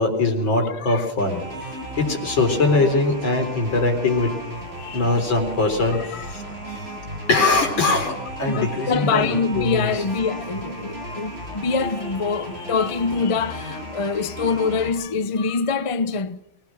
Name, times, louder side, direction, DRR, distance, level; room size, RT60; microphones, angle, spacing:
voice 1, 0.0-1.7 2.0-4.3 4.9-6.9 7.3-10.0, left 3 dB, 90° left, 4.7 m, -22 dB
voice 2, 0.6-1.1 4.8-5.0 6.1-6.2 8.5-16.4, left 4 dB, 40° left, 0.4 m, -25 dB
sound 1, 1.2-14.9, right 1 dB, 30° right, 6.9 m, -35 dB
23.5 x 21.0 x 6.3 m
omnidirectional pair, 2.1 m